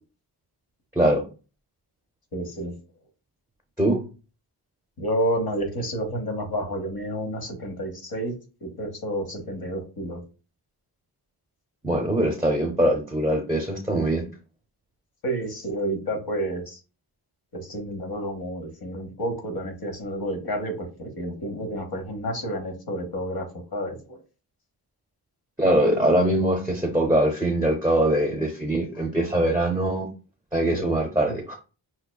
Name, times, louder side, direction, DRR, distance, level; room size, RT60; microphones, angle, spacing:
voice 1, 0.9-1.2 3.8-4.0 11.8-14.2 25.6-30.1 30.5-31.5, right 1 dB, 10° right, 2 dB, 0.7 m, -22 dB
voice 2, 2.3-2.7 5.0-10.2 15.2-16.8 17.5-24.2 30.7-30.9 31.3-31.4, right 1 dB, 55° left, 4 dB, 1.1 m, -30 dB
5.7 x 2.2 x 2.3 m, 0.34 s
wide cardioid pair, 85°, 43 cm